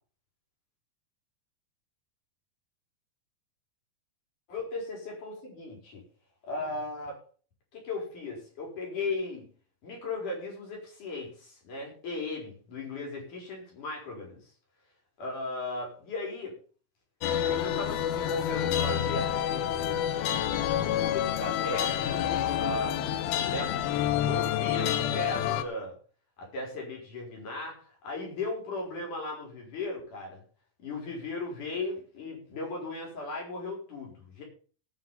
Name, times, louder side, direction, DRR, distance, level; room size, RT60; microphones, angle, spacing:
voice 1, 4.5-6.0 6.4-7.2 7.7-9.5 9.8-14.4 15.2-16.6 17.6-20.1 20.8-21.9 22.6-26.0 26.4-30.4 30.8-34.4, left 2 dB, 55° left, -1 dB, 6.0 m, -37 dB
sound 1, 17.2-25.6, left 10 dB, 85° left, 2.8 m, -28 dB
18.5 x 6.2 x 5.5 m, 0.42 s
omnidirectional pair, 4.2 m